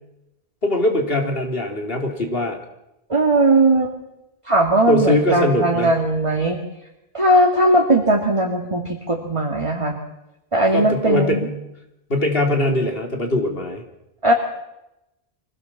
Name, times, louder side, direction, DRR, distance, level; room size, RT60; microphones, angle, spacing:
voice 1, 0.6-2.6 4.9-5.9 10.7-11.6 12.1-13.8, left 1 dB, 65° left, 3 dB, 3.4 m, -21 dB
voice 2, 3.1-3.9 4.5-6.6 7.1-10.0 10.5-11.5 14.2-14.3, right 1 dB, 30° right, 0 dB, 2.3 m, -18 dB
24.5 x 17.5 x 7.3 m, 0.89 s
omnidirectional pair, 1.1 m